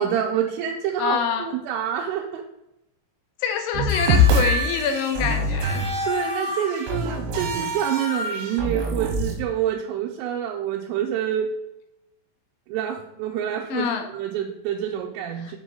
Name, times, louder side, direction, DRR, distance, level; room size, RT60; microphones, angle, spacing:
voice 1, 0.0-2.5 6.0-11.5 12.7-13.9 14.1-15.6, right 9 dB, 90° right, -1 dB, 3.3 m, -27 dB
voice 2, 1.0-1.5 3.4-5.9 13.7-14.1 15.4-15.6, left 7 dB, 80° left, 6 dB, 2.8 m, -26 dB
sound 1, 3.7-9.3, left 1 dB, 70° right, 3.3 m, -24 dB
7.3 x 6.4 x 3.9 m, 0.90 s
omnidirectional pair, 5.6 m